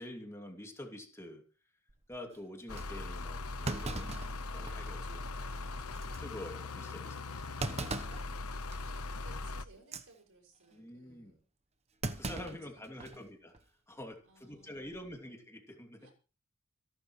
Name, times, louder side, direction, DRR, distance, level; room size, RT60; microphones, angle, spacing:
voice 1, 0.0-1.4 2.1-4.2 4.5-5.0 6.2-7.1 7.7-7.9 10.7-11.3 12.1-13.5 13.9-16.0, left 1 dB, 15° left, 3 dB, 2.7 m, -47 dB
Thump thud, 1.9-2.2 2.8-2.9 3.6-5.0 5.4-5.5 5.9-6.2 7.6-8.3 8.7-9.0 9.8-10.1 12.0-13.2 13.5-13.6 14.8-15.1, right 2 dB, 30° right, 1.0 m, -39 dB
sound 1, 2.7-9.6, left 3 dB, 70° left, 1.0 m, -40 dB
voice 2, 4.5-6.2 7.0-8.2 8.8-11.4 12.5-13.3 14.2-15.2 16.0-16.1, right 2 dB, 65° right, 3 dB, 6.3 m, -61 dB
27.5 x 11.5 x 3.2 m, 0.35 s
head